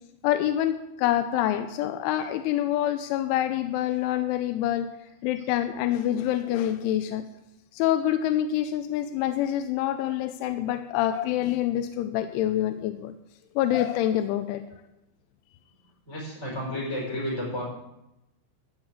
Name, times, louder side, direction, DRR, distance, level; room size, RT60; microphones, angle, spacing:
voice 1, 0.2-4.9 5.2-7.2 7.7-13.1 13.6-14.6, left 12 dB, 85° left, 9 dB, 2.9 m, -26 dB
voice 2, 16.1-17.6, left 1 dB, 15° left, -3 dB, 4.5 m, -31 dB
14.5 x 6.4 x 8.1 m, 0.91 s
omnidirectional pair, 5.8 m